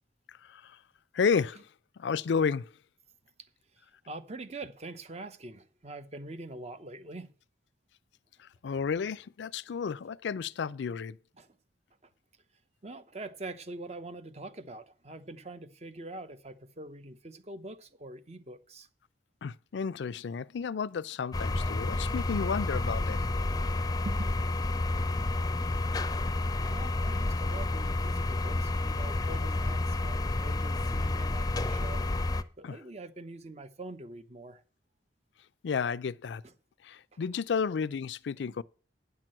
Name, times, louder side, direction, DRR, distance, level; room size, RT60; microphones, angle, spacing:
voice 1, 0.3-0.8 1.1-1.7 2.0-2.7 8.4-11.2 19.4-23.2 32.6-32.8 35.6-36.4 36.8-38.6, left 6 dB, 75° left, 0.4 m, -32 dB
voice 2, 4.1-7.3 11.4-11.5 12.8-18.9 24.0-24.3 26.7-32.0 32.6-34.6 38.5-38.6, right 2 dB, 35° right, 0.8 m, -44 dB
sound 1, 21.3-32.4, left 2 dB, 20° left, 0.5 m, -30 dB
9.6 x 6.0 x 7.5 m
head